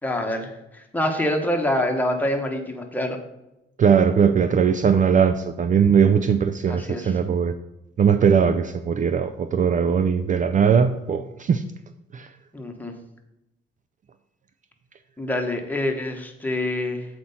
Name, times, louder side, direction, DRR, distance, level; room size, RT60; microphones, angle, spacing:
voice 1, 0.0-3.2 6.7-7.2 12.5-12.9 15.2-17.1, left 1 dB, 10° left, 3 dB, 1.4 m, -26 dB
voice 2, 3.8-7.5 8.0-11.6 12.1-12.3, right 7 dB, 40° right, 11 dB, 0.4 m, -19 dB
7.6 x 4.4 x 5.5 m, 0.90 s
cardioid pair, 90°, 20 cm